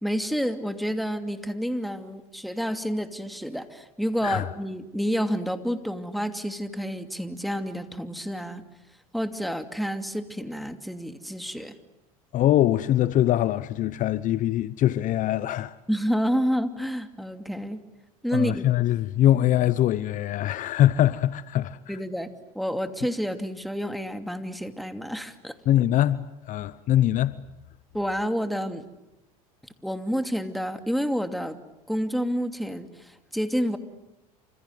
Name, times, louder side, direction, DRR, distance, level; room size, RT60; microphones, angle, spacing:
voice 1, 0.0-8.6 9.1-11.7 15.9-17.8 18.2-18.6 19.3-19.4 21.9-22.3 22.5-25.6 27.9-28.9 29.8-31.6 31.9-33.8, equal, ahead, 2.6 m, -29 dB
voice 2, 12.3-15.7 18.3-22.0 25.7-27.4, left 12 dB, 45° left, 0.9 m, -23 dB
28.5 x 26.5 x 7.9 m
hypercardioid pair, 95°, 18 cm